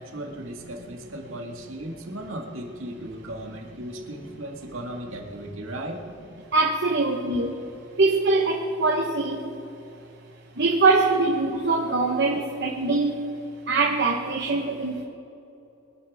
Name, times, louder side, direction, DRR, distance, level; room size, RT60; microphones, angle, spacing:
voice 1, 0.0-6.0, right 1 dB, 70° right, 1 dB, 1.9 m, -36 dB
voice 2, 6.5-7.5 8.0-9.4 10.6-13.1 13.7-15.0, right 3 dB, 55° right, 0 dB, 1.2 m, -22 dB
24.0 x 10.5 x 3.6 m, 2.8 s
head